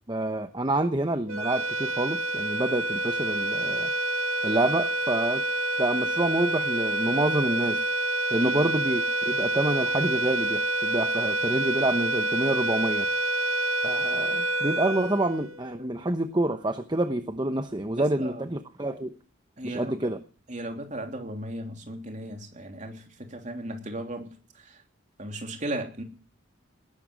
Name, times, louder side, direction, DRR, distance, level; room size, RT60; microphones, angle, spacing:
voice 1, 0.1-3.9 4.4-5.4 5.8-7.8 8.3-13.1 13.8-19.1 19.6-20.2, right 1 dB, 20° right, 8 dB, 0.9 m, -27 dB
sound 1, 1.3-15.9, right 2 dB, 90° right, 1.2 m, -27 dB
voice 2, 8.4-8.7 17.9-18.4 19.6-20.1 20.5-24.8 25.2-26.0, right 1 dB, 35° right, 3 dB, 3.1 m, -36 dB
19.5 x 11.5 x 6.4 m, 0.40 s
head